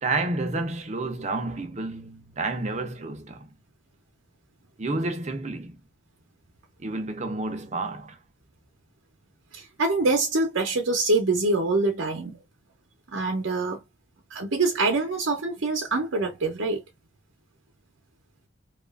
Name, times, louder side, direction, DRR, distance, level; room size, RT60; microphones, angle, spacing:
voice 1, 0.0-3.5 4.8-5.8 6.8-8.2, right 2 dB, 35° right, 0.6 m, -30 dB
voice 2, 9.5-12.4 13.1-13.8 14.3-16.8, right 3 dB, 75° right, 0.7 m, -25 dB
2.9 x 2.4 x 2.3 m
head